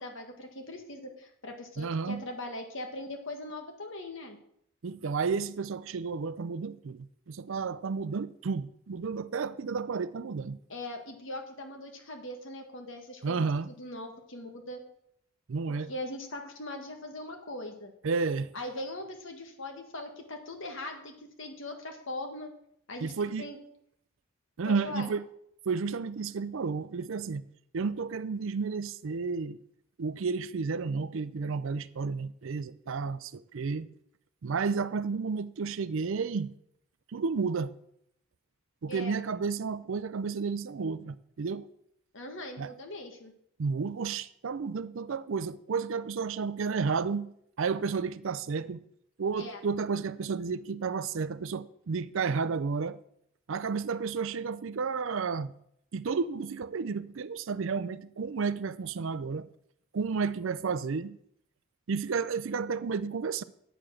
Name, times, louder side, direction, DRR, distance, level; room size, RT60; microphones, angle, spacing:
voice 1, 0.0-4.4 10.7-13.4 13.7-14.8 15.7-17.9 18.5-22.5 22.9-23.1 23.4-23.6 24.6-25.1 38.9-39.2 42.1-43.3 49.4-49.6, left 1 dB, 60° left, 1.7 m, -40 dB
voice 2, 1.8-2.2 4.8-10.6 13.2-13.7 15.5-15.9 18.0-18.5 23.0-23.5 24.6-25.2 25.7-27.4 27.7-29.6 30.0-33.9 34.4-36.5 37.1-37.7 38.8-41.7 42.6-42.7 43.6-47.3 47.6-48.8 49.2-53.0 53.5-55.5 55.9-59.5 59.9-61.2 61.9-63.4, right 5 dB, 60° right, 0.5 m, -32 dB
8.8 x 6.9 x 6.3 m
head